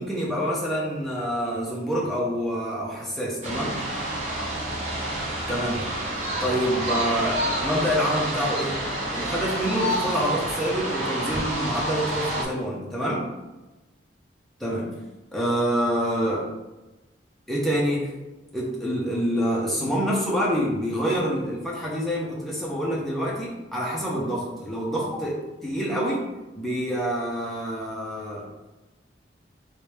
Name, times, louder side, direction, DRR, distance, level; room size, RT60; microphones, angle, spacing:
voice 1, 0.0-3.7 5.5-5.9 6.4-8.8 9.1-13.2 14.6-14.9 15.3-16.5 17.5-18.1 18.5-26.2 26.6-28.5, equal, ahead, -5 dB, 0.7 m, -27 dB
sound 1, 3.4-12.4, right 1 dB, 35° right, 0.7 m, -28 dB
3.2 x 3.2 x 3.3 m, 1.1 s
head